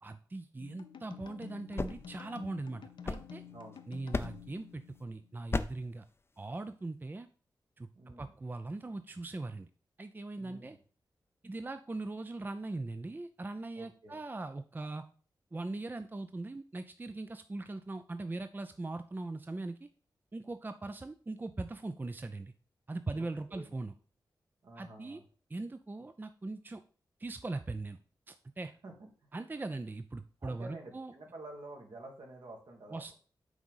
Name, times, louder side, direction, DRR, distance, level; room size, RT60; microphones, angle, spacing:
voice 1, 0.0-3.4 3.9-6.1 6.4-7.3 7.8-9.7 10.0-10.8 11.4-15.0 15.5-19.9 20.3-22.5 22.9-23.9 24.8-25.2 25.5-26.8 27.2-28.0 28.3-28.7 29.3-31.1 32.9-33.1, right 2 dB, 25° right, 10 dB, 0.4 m, -40 dB
sound 1, 0.6-5.4, left 8 dB, 80° left, 0.7 m, -51 dB
sound 2, 1.5-3.7 4.1-4.6 5.5-6.0, left 3 dB, 30° left, 0.5 m, -37 dB
voice 2, 8.0-8.3 10.4-10.8 13.8-14.2 23.1-23.7 24.6-25.2 28.8-28.9 29.2-29.3 30.4-33.1, right 2 dB, 70° right, 1 dB, 1.9 m, -49 dB
6.1 x 3.8 x 5.5 m, 0.40 s
cardioid pair, 65°, 8 cm